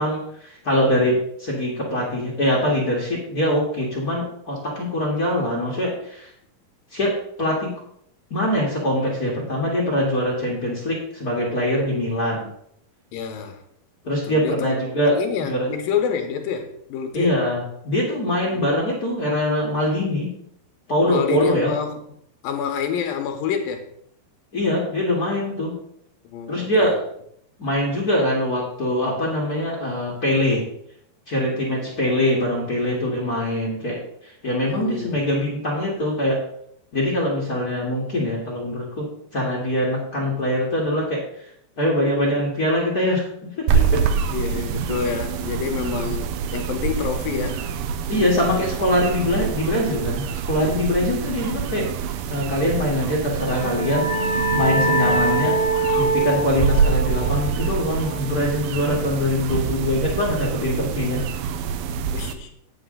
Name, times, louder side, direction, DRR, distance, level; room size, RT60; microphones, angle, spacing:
voice 1, 0.0-6.3 6.9-7.7 8.3-12.5 14.0-15.2 15.5-15.7 17.1-20.3 20.9-21.7 24.5-25.7 26.5-27.0 27.6-30.6 31.3-36.4 36.9-39.1 39.3-41.2 41.8-43.2 43.6-44.0 48.1-51.9 52.3-54.1 54.5-55.6 55.9-61.2, left 1 dB, 40° left, -4 dB, 1.4 m, -23 dB
voice 2, 13.1-13.6 14.2-14.7 15.1-17.4 18.5-18.6 21.1-22.0 22.4-23.9 26.2-27.0 34.6-35.3 44.3-47.6 62.1-62.5, left 7 dB, 75° left, 5 dB, 2.7 m, -28 dB
sound 1, 43.7-62.3, right 6 dB, 80° right, 2.2 m, -26 dB
sound 2, 53.3-58.7, right 2 dB, 20° right, 3.6 m, -24 dB
9.3 x 7.8 x 3.8 m, 0.70 s
omnidirectional pair, 4.4 m